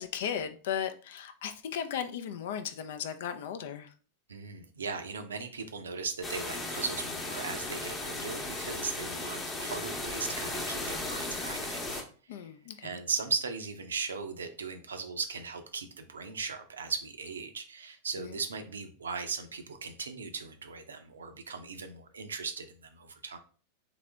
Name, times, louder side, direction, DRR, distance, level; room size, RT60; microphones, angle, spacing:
voice 1, 0.0-3.9 12.3-13.0 18.2-18.3, left 8 dB, 55° left, 0.5 m, -36 dB
voice 2, 4.3-12.0 12.8-23.4, right 5 dB, 70° right, 0.6 m, -38 dB
sound 1, 6.2-12.0, left 2 dB, 20° left, 0.9 m, -36 dB
4.0 x 2.8 x 3.4 m
figure-of-eight pair, 90°, 0 cm